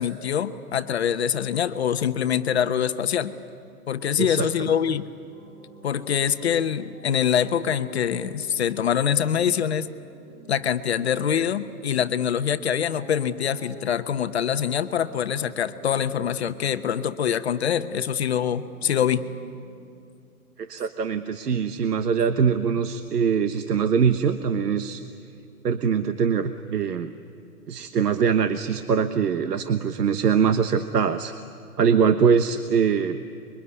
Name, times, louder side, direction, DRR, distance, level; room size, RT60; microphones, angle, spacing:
voice 1, 0.0-3.3 3.9-5.1 5.8-9.9 10.5-19.2, left 8 dB, 45° left, 9 dB, 1.0 m, -24 dB
voice 2, 4.2-4.7 20.6-25.0 25.6-27.1 27.7-31.3 31.8-33.2, right 6 dB, 85° right, 9 dB, 1.3 m, -23 dB
sound 1, 5.3-19.5, right 2 dB, 30° right, 4.3 m, -51 dB
25.5 x 23.0 x 9.7 m, 2.5 s
hypercardioid pair, 170°, 46 cm